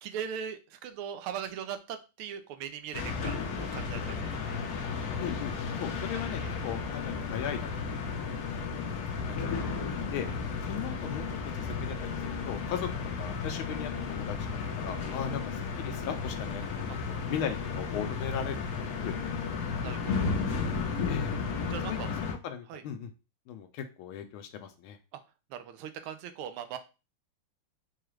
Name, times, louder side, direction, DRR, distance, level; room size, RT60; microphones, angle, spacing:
voice 1, 0.0-3.4 3.7-4.1 4.4-4.6 6.4-6.5 16.9-17.0 19.8-20.3 21.7-22.1 22.7-22.8 25.1-25.2 25.5-26.8, right 8 dB, 90° right, 9 dB, 1.5 m, -39 dB
sound 1, 2.9-22.3, left 5 dB, 70° left, 0.9 m, -33 dB
voice 2, 5.2-5.5 5.8-9.5 10.1-10.3 10.7-11.3 11.6-12.9 13.2-14.4 14.7-18.6 19.0-19.4 21.1-21.3 21.9-22.0 22.4-23.1 23.5-25.0, left 8 dB, 85° left, 7 dB, 1.4 m, -38 dB
4.7 x 2.4 x 3.1 m, 0.30 s
omnidirectional pair, 2.3 m